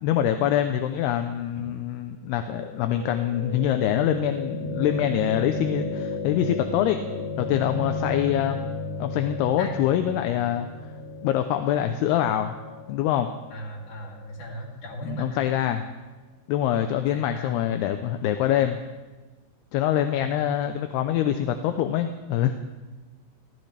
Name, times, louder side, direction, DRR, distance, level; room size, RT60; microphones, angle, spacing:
voice 1, 0.0-7.0 7.4-8.6 9.0-10.7 11.2-12.6 12.9-13.3 15.0-15.8 16.5-18.8 19.7-22.5, left 11 dB, 80° left, 7 dB, 2.6 m, -25 dB
sound 1, 2.3-14.4, left 2 dB, 5° left, 6.4 m, -34 dB
voice 2, 13.5-15.4 17.1-17.5 20.1-20.3, equal, 50° left, -2 dB, 4.1 m, -37 dB
29.0 x 14.5 x 3.4 m, 1.2 s
omnidirectional pair, 4.9 m